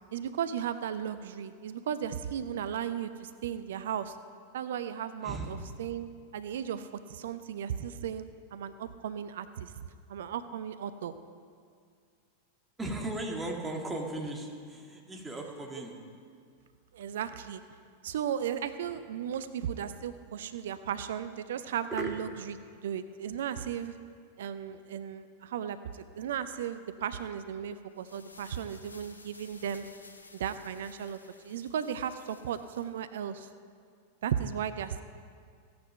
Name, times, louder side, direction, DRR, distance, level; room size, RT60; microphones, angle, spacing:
voice 1, 0.1-4.2 4.5-6.1 6.3-9.7 10.1-11.1 16.9-17.6 18.0-22.5 22.8-24.0 24.4-29.9 30.3-31.2 31.4-33.5 34.2-35.0, right 9 dB, 60° right, 12 dB, 0.5 m, -35 dB
voice 2, 12.8-16.0 21.9-22.1, right 2 dB, 10° right, 0 dB, 2.0 m, -36 dB
sound 1, 27.8-33.0, left 3 dB, 80° left, 0.7 m, -55 dB
15.5 x 9.5 x 5.6 m, 2.2 s
figure-of-eight pair, 90°, 0 cm